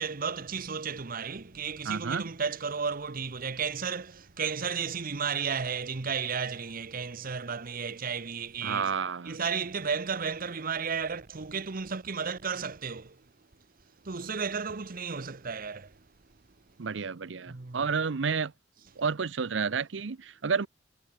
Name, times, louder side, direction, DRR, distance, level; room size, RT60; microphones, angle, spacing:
voice 1, 0.0-8.9 9.2-13.2 14.0-15.9 17.5-17.8, right 6 dB, 50° right, 0.9 m, -33 dB
voice 2, 1.8-2.2 8.6-9.4 16.8-18.5 19.0-20.7, right 5 dB, 80° right, 0.7 m, -30 dB
head